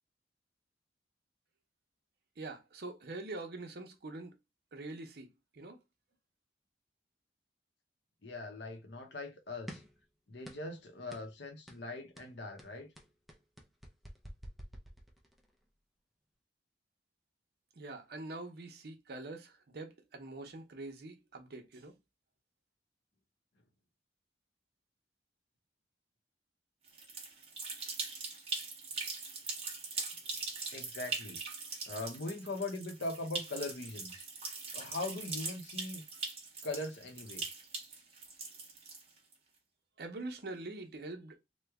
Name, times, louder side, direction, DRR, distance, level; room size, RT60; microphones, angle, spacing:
voice 1, 2.4-4.4 4.7-5.3 5.5-5.8 17.8-21.9 40.0-41.4, right 2 dB, 60° right, 0.7 m, -44 dB
voice 2, 8.2-9.8 10.3-12.9 30.7-31.4 31.8-34.3 34.7-36.1 36.6-37.4, left 2 dB, 75° left, 0.8 m, -41 dB
sound 1, 9.7-10.0 10.4-10.8 11.1-11.3 11.7-11.9 12.2-15.5, equal, ahead, 0.5 m, -49 dB
sound 2, 26.9-39.3, right 4 dB, 35° right, 0.9 m, -41 dB
3.0 x 2.2 x 3.4 m
head